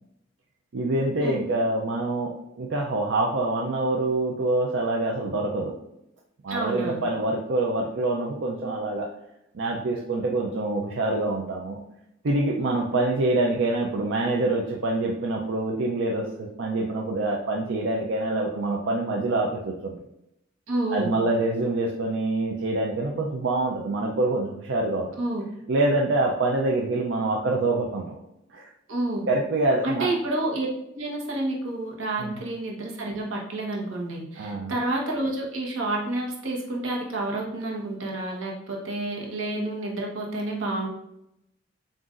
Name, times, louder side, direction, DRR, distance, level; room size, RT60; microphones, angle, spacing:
voice 1, 0.7-2.3 2.6-5.7 6.4-9.1 9.5-11.8 12.2-20.0 20.9-25.1 25.7-28.2 28.5-28.7 29.3-30.1 32.2-32.4 34.4-34.7, right 2 dB, 65° right, -1 dB, 0.5 m, -25 dB
voice 2, 6.5-7.0 20.7-21.1 25.2-25.4 28.9-29.2 29.8-30.7 30.9-40.9, right 2 dB, 85° right, -2 dB, 1.1 m, -29 dB
7.6 x 2.6 x 2.5 m, 0.84 s
head